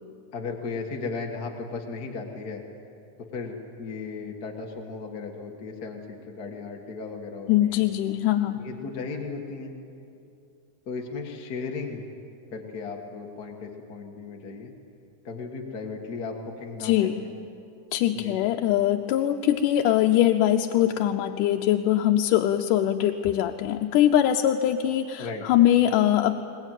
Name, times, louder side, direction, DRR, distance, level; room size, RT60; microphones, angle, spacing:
voice 1, 0.3-2.6 3.3-7.8 8.5-9.8 10.9-12.1 12.5-14.7 15.2-17.3 18.1-18.3 25.2-25.4, left 4 dB, 40° left, 1 dB, 1.5 m, -36 dB
voice 2, 7.5-8.6 16.8-17.1 17.9-26.4, left 12 dB, 85° left, 4 dB, 2.2 m, -22 dB
22.0 x 20.5 x 9.1 m, 2.6 s
omnidirectional pair, 3.6 m